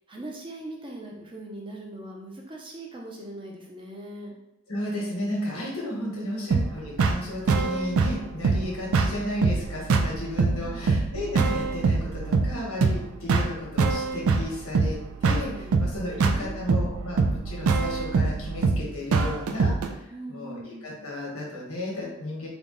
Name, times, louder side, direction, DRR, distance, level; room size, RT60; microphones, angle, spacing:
voice 1, 0.1-4.3 6.1-6.5 10.6-11.0 15.5-15.7 16.0-16.8 20.1-21.0, right 1 dB, 25° right, -1 dB, 0.5 m, -41 dB
voice 2, 4.7-22.5, left 1 dB, 85° left, -3 dB, 1.3 m, -34 dB
sound 1, 6.5-19.9, right 4 dB, 85° right, 0.4 m, -24 dB
3.5 x 2.3 x 3.8 m, 0.89 s
head